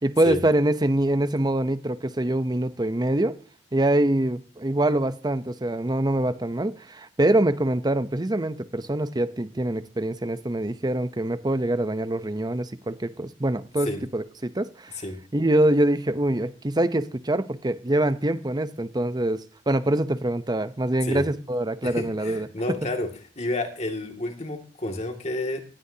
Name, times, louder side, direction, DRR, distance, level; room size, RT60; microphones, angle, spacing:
voice 1, 0.0-3.4 3.7-15.0 15.3-22.5, right 1 dB, 25° right, 13 dB, 0.7 m, -24 dB
voice 2, 21.8-23.1 23.4-25.6, left 2 dB, 40° left, 4 dB, 2.3 m, -30 dB
20.5 x 16.5 x 2.8 m, 0.39 s
head